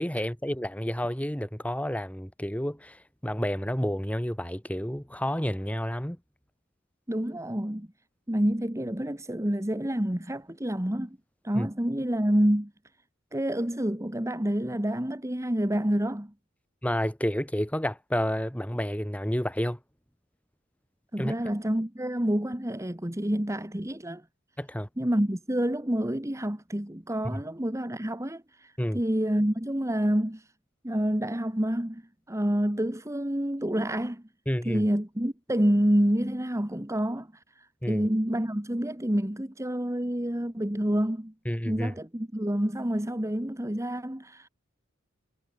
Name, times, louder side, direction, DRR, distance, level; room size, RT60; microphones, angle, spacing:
voice 1, 0.0-3.0 3.2-6.2 11.5-11.7 16.8-19.8 21.2-21.3 24.6-24.9 27.3-27.4 28.8-29.0 34.5-34.9 37.8-38.1 41.4-41.9, equal, 5° left, 4.7 m, -30 dB
voice 2, 7.1-7.9 8.3-11.2 11.4-12.7 13.3-16.3 21.1-24.2 25.0-30.5 30.8-32.0 32.3-34.2 34.6-41.3 41.6-44.5, equal, 15° right, 1.7 m, -28 dB
head